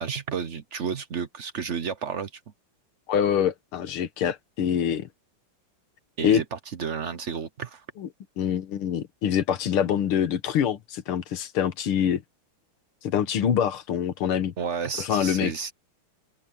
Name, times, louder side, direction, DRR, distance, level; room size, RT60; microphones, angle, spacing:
voice 1, 0.0-2.3 6.2-7.8 14.6-15.7, right 6 dB, 60° right, 0.7 m, -31 dB
voice 2, 3.1-5.1 6.2-6.4 8.0-8.1 8.4-12.2 13.0-14.5 15.0-15.5, left 9 dB, 90° left, 2.1 m, -25 dB
omnidirectional pair, 2.3 m